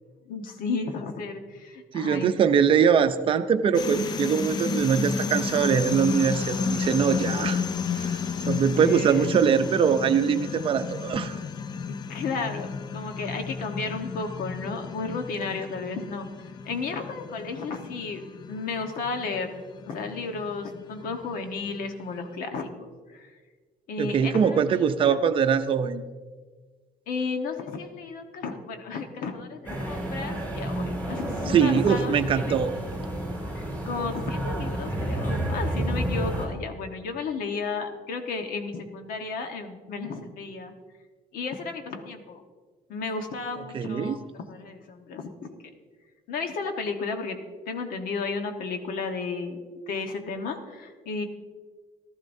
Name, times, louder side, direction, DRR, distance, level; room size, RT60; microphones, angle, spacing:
voice 1, 0.3-2.3 7.3-7.6 8.6-9.2 11.9-16.3 16.6-18.2 18.5-19.6 19.9-23.3 23.9-24.6 25.0-25.2 27.1-32.6 33.5-40.7 41.3-42.4 42.9-45.6 46.3-47.4 47.7-51.3, left 4 dB, 75° left, 5 dB, 1.2 m, -33 dB
voice 2, 1.9-7.6 8.0-8.2 8.5-11.4 24.0-26.0 31.5-32.7 43.7-44.2, right 7 dB, 35° right, 9 dB, 0.6 m, -22 dB
sound 1, 3.7-22.2, left 5 dB, 30° left, 0.4 m, -33 dB
sound 2, 29.6-36.5, right 1 dB, 15° left, 3.1 m, -30 dB
15.0 x 13.5 x 2.7 m, 1.4 s
cardioid pair, 170°, 14 cm